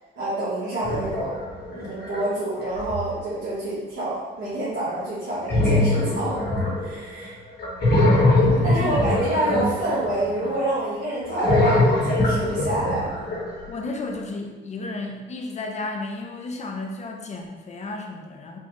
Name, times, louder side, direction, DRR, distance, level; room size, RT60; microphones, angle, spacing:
voice 1, 0.1-1.4 1.7-6.3 6.8-7.3 8.6-13.1, right 1 dB, 70° right, -11 dB, 1.3 m, -27 dB
sound 1, 0.8-2.2 2.7-3.2 5.5-7.2 7.6-10.5 11.2-13.8, left 1 dB, 55° left, 1.4 m, -22 dB
voice 2, 8.6-9.0 13.7-18.6, left 3 dB, 35° left, 2 dB, 0.6 m, -33 dB
4.4 x 2.3 x 3.0 m, 1.3 s
cardioid pair, 90°, 20 cm